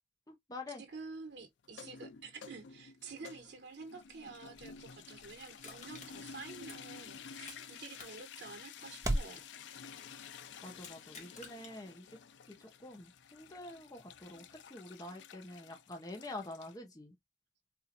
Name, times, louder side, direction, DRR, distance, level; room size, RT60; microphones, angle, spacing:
voice 1, 0.3-0.8 10.6-12.2 12.5-17.2, left 2 dB, 20° left, 0.8 m, -47 dB
voice 2, 0.8-9.4, right 4 dB, 80° right, 1.1 m, -49 dB
sound 1, 1.6-16.8, left 6 dB, 90° left, 0.4 m, -52 dB
sound 2, 3.1-9.4, right 1 dB, 20° right, 0.6 m, -43 dB
Crushing, 5.6-7.7 8.0-10.2 10.7-11.7 12.2-12.3, left 4 dB, 40° left, 1.2 m, -54 dB
4.3 x 2.7 x 2.5 m
head